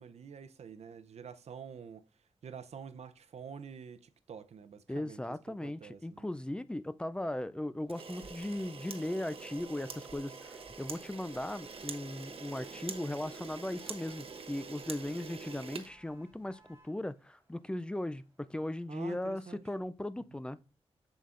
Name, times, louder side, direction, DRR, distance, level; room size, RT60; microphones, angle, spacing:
voice 1, 0.0-2.1 2.4-6.3 18.9-19.6, right 6 dB, 90° right, 0.5 m, -48 dB
voice 2, 4.9-20.6, left 1 dB, 10° left, 0.3 m, -38 dB
Camera, 7.9-16.6, right 5 dB, 60° right, 0.9 m, -45 dB
Motor vehicle (road), 9.3-19.8, right 2 dB, 25° right, 3.8 m, -67 dB
7.5 x 7.0 x 2.5 m
wide cardioid pair, 135°, 11 cm